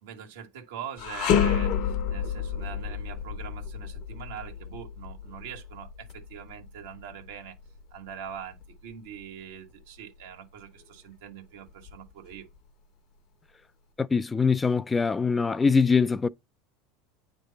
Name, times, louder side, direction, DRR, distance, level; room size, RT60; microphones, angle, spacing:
voice 1, 0.0-7.6 7.9-12.5, right 8 dB, 85° right, 1.5 m, -43 dB
sound 1, 1.0-10.2 10.6-10.8 11.7-12.6, left 8 dB, 60° left, 0.9 m, -31 dB
voice 2, 14.0-16.3, left 5 dB, 15° left, 0.3 m, -23 dB
8.5 x 3.3 x 4.0 m
supercardioid pair, 125°, 0 cm